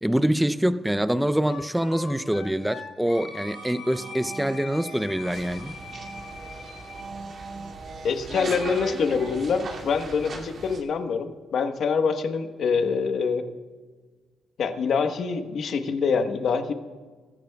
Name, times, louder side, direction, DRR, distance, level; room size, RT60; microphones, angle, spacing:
voice 1, 0.0-5.7, equal, 5° right, 0.6 m, -25 dB
Wind instrument woodwind instrument, 1.4-7.1, left 5 dB, 85° left, 4.0 m, -42 dB
sound 1, 3.2-10.6, right 4 dB, 70° right, 1.4 m, -43 dB
sound 2, 5.2-10.8, right 3 dB, 50° right, 2.5 m, -39 dB
voice 2, 8.0-13.4 14.6-16.7, left 5 dB, 60° left, 1.2 m, -25 dB
24.0 x 14.5 x 2.3 m
cardioid pair, 90°, 0 cm